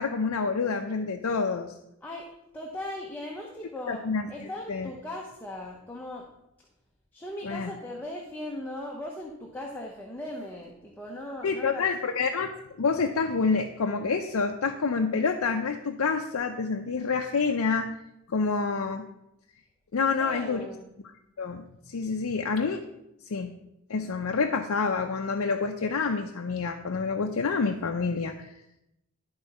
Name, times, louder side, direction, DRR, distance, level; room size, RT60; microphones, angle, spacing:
voice 1, 0.0-1.7 3.9-4.9 7.4-7.7 11.4-17.9 18.3-19.0 19.9-20.7 21.4-22.8 23.2-23.5 23.9-28.5, left 4 dB, 80° left, 3 dB, 0.5 m, -28 dB
voice 2, 2.5-4.0 4.3-6.3 7.1-11.9 20.2-20.9, left 1 dB, 10° left, -2 dB, 0.7 m, -38 dB
11.0 x 3.9 x 5.4 m, 0.86 s
head